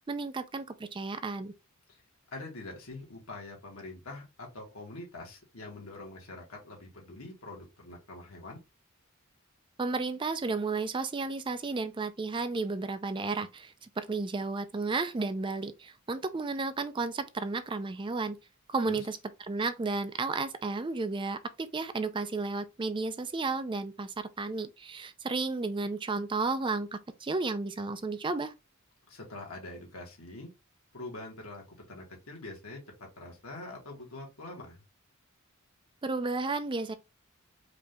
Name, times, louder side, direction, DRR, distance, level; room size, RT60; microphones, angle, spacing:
voice 1, 0.1-1.5 9.8-18.4 18.7-19.2 19.5-28.5 36.0-36.9, right 3 dB, 25° right, 0.4 m, -33 dB
voice 2, 2.3-8.6 18.8-19.1 29.1-30.5 30.9-34.8, left 2 dB, 85° left, 2.0 m, -44 dB
5.0 x 2.8 x 3.4 m
head